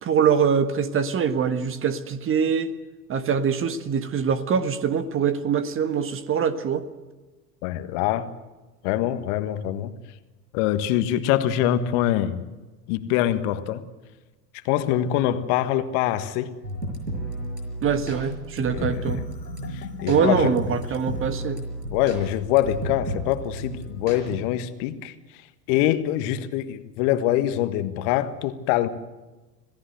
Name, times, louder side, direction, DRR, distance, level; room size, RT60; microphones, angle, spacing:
voice 1, 0.0-2.7 3.1-6.8 17.8-19.2 20.1-21.6, right 7 dB, 25° right, 12 dB, 1.5 m, -23 dB
voice 2, 7.6-8.3 8.8-9.9 10.5-12.4 12.9-13.8 14.6-16.5 18.7-19.1 19.7-20.5 21.9-25.1 25.7-28.9, left 12 dB, 45° left, 11 dB, 1.6 m, -24 dB
sound 1, 16.6-24.4, right 1 dB, 85° right, 5.9 m, -33 dB
Marimba xylophone, 18.1-21.4, left 5 dB, 80° left, 1.7 m, -42 dB
27.0 x 17.5 x 7.9 m, 1.2 s
figure-of-eight pair, 80°, 49 cm